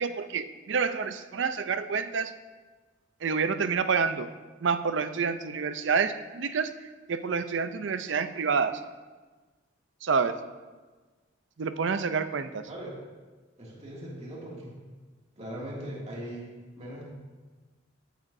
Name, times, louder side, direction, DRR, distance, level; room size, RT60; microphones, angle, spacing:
voice 1, 0.0-2.3 3.2-4.3 4.6-6.7 7.1-8.8 10.0-10.4 11.6-12.6, right 5 dB, 70° right, 11 dB, 0.5 m, -28 dB
voice 2, 13.6-14.7 15.4-16.5 16.8-17.1, right 1 dB, 35° right, -5 dB, 2.3 m, -39 dB
14.0 x 9.3 x 2.7 m, 1.3 s
head